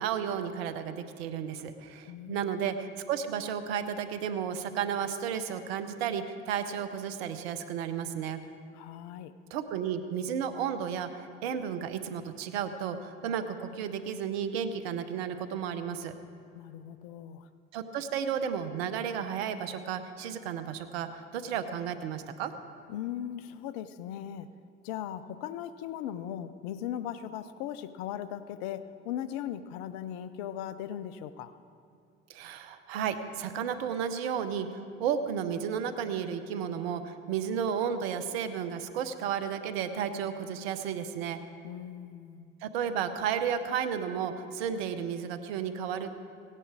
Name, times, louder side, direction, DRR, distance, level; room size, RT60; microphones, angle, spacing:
voice 1, 0.0-8.4 9.5-16.1 17.7-22.5 32.3-41.4 42.6-46.2, right 8 dB, 90° right, 10 dB, 0.8 m, -33 dB
voice 2, 2.1-2.7 8.7-9.3 16.6-17.5 22.9-24.5 24.8-31.5 41.6-42.5, left 10 dB, 85° left, 14 dB, 0.6 m, -38 dB
17.0 x 9.9 x 4.8 m, 2.6 s
hypercardioid pair, 55°, 30 cm